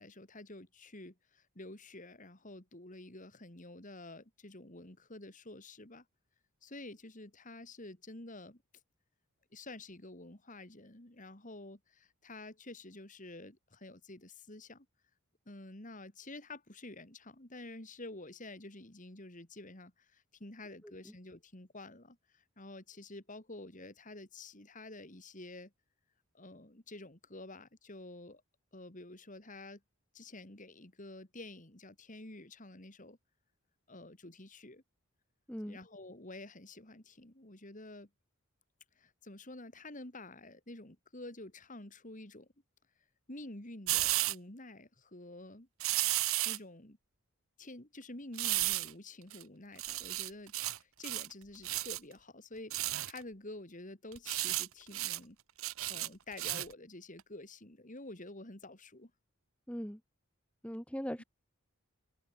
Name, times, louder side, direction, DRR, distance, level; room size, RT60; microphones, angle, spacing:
voice 1, 0.0-6.1 6.6-8.6 9.5-14.9 15.5-25.7 26.3-28.4 28.7-29.8 30.1-33.2 33.9-34.8 35.7-38.1 39.0-42.5 43.3-45.7 46.1-47.0 47.6-55.4 55.9-59.1 61.2-61.3, left 2 dB, 35° left, 2.7 m, -49 dB
sound 1, 43.9-44.3 45.8-46.6 48.4-48.9 49.3-49.4 49.8-50.8 51.0-51.3 51.6-52.0 52.7-53.2 54.1-54.7 54.9-55.2 55.6-56.7 57.2-57.3, right 16 dB, 70° right, 1.0 m, -33 dB
voice 2, 59.7-60.0 60.6-61.2, equal, 5° left, 2.7 m, -40 dB
open air
head